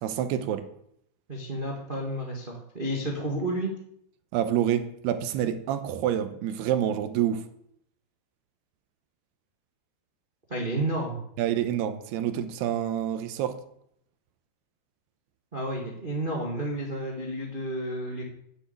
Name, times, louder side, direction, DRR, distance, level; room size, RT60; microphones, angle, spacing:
voice 1, 0.0-0.7 4.3-7.5 11.4-13.6, right 10 dB, 90° right, 10 dB, 2.9 m, -27 dB
voice 2, 1.3-3.7 10.5-11.2 15.5-18.2, right 1 dB, 60° right, 0 dB, 0.5 m, -31 dB
9.7 x 7.0 x 8.5 m, 0.73 s
omnidirectional pair, 4.5 m